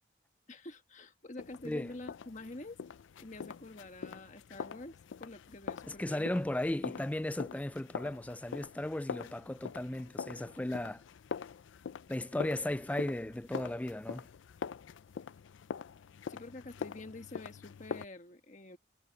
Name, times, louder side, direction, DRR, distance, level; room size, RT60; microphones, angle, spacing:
voice 1, 0.5-2.8 3.2-6.4 16.3-18.8, left 2 dB, 40° left, 1.5 m, -47 dB
sound 1, 1.4-18.0, left 6 dB, 80° left, 0.4 m, -44 dB
voice 2, 5.9-11.0 12.1-14.3, left 1 dB, 10° left, 0.3 m, -35 dB
head